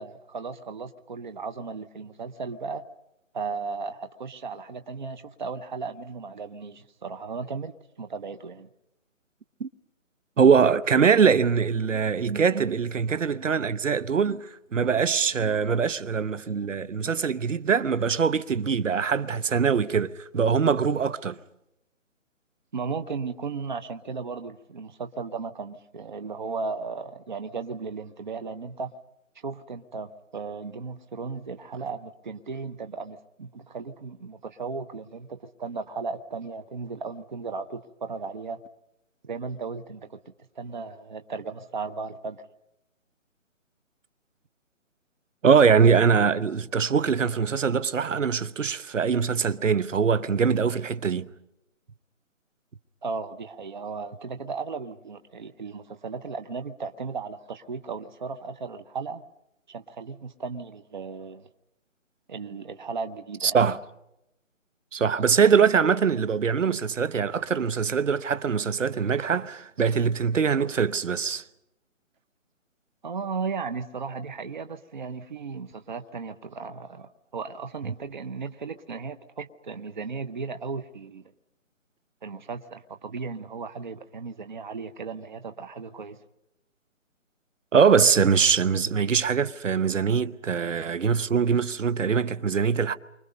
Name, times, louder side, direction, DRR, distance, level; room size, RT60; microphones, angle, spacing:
voice 1, 0.0-2.8 3.3-8.7 22.7-28.9 29.4-38.6 39.2-40.2 40.5-42.4 53.0-59.2 59.7-61.5 62.3-63.6 73.0-81.2 82.2-86.2, right 4 dB, 35° right, 1.0 m, -35 dB
voice 2, 10.4-21.4 45.4-51.3 63.4-63.8 64.9-71.4 87.7-92.9, right 6 dB, 70° right, 1.2 m, -23 dB
29.0 x 25.0 x 5.4 m
hypercardioid pair, 170°, 39 cm